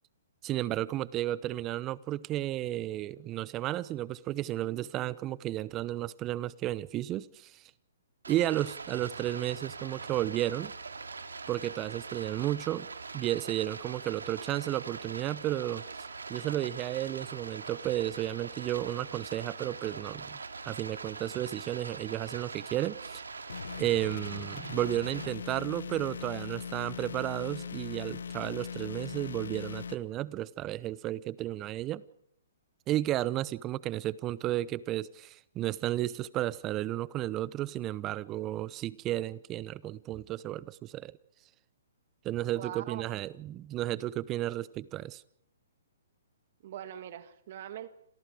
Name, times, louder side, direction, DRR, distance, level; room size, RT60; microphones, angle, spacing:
voice 1, 0.4-7.6 8.3-10.7 11.5-12.9 13.1-15.8 16.3-20.4 20.6-23.2 23.8-32.0 32.9-41.1 42.2-45.2, right 14 dB, 25° right, 0.9 m, -33 dB
Stream, 8.2-25.3, right 4 dB, 85° right, 2.5 m, -43 dB
sound 1, 23.5-30.0, left 6 dB, 75° left, 1.3 m, -40 dB
voice 2, 42.5-43.2 46.6-47.9, right 11 dB, 50° right, 1.8 m, -42 dB
29.0 x 27.0 x 5.0 m
hypercardioid pair, 130°, 0 cm